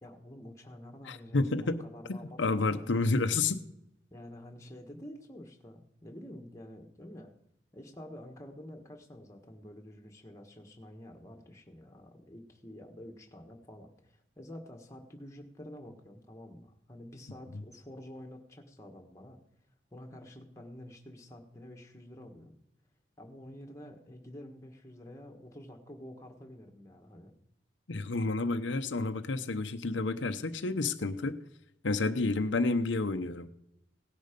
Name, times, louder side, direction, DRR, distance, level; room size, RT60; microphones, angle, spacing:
voice 1, 0.0-2.9 4.1-7.3 7.7-19.4 19.9-22.5 23.2-27.3, left 1 dB, 15° left, 1 dB, 1.6 m, -49 dB
voice 2, 1.1-1.8 2.1-3.6 27.9-31.4 31.8-33.5, left 3 dB, 80° left, 8 dB, 0.8 m, -30 dB
17.5 x 10.5 x 5.2 m, 0.79 s
head